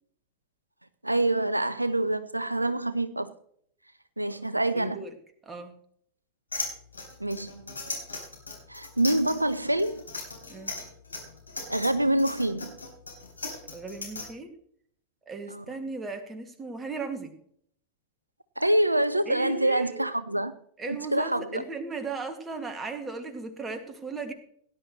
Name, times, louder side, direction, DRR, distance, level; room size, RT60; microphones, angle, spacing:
voice 1, 1.0-3.3 4.2-5.0 7.2-7.7 8.7-10.0 11.7-12.7 15.5-15.6 18.6-20.5 20.8-21.6, right 1 dB, 85° right, 14 dB, 0.6 m, -26 dB
voice 2, 4.7-5.1 5.4-5.7 10.5-10.7 13.7-14.5 15.3-17.3 19.3-20.1 20.8-24.3, right 3 dB, 15° right, 6 dB, 2.1 m, -37 dB
sound 1, 6.5-14.2, left 3 dB, 80° left, 3.8 m, -37 dB
18.0 x 11.0 x 3.1 m, 0.63 s
figure-of-eight pair, 90°, 0 cm